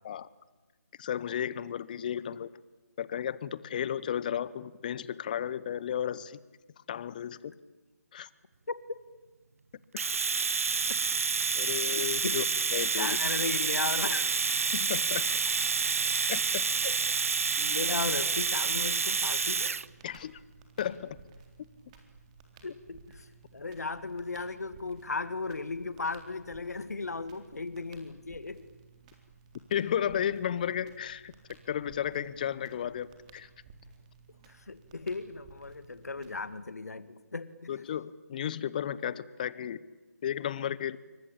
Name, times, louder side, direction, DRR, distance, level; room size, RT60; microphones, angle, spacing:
voice 1, 1.0-2.5 3.0-6.4 6.9-7.5 8.1-8.3 11.5-12.4 12.7-13.2 14.7-15.3 16.3-16.7 20.0-20.3 20.8-21.2 29.7-31.3 31.7-33.5 37.7-39.8 40.2-41.0, left 9 dB, 30° left, 19 dB, 1.0 m, -33 dB
Domestic sounds home sounds, 10.0-19.9, right 5 dB, 55° right, 0.9 m, -28 dB
voice 2, 13.0-14.3 16.8-17.0 17.6-19.7 22.6-23.3 23.5-28.7 34.5-37.8, left 3 dB, 65° left, 13 dB, 2.3 m, -36 dB
Crackle, 19.4-36.6, right 5 dB, 20° right, 3.7 m, -56 dB
29.0 x 23.0 x 8.7 m, 1.2 s
figure-of-eight pair, 155°, 9 cm